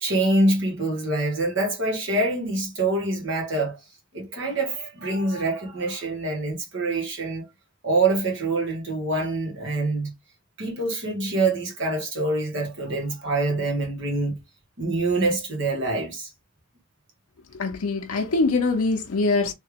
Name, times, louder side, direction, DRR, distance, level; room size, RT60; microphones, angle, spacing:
voice 1, 0.0-3.8 4.1-7.4 7.8-10.1 10.6-14.4 14.8-16.3, right 2 dB, 60° right, 1.6 m, -25 dB
voice 2, 17.5-19.5, left 3 dB, 85° left, 0.6 m, -23 dB
3.3 x 2.8 x 3.4 m
head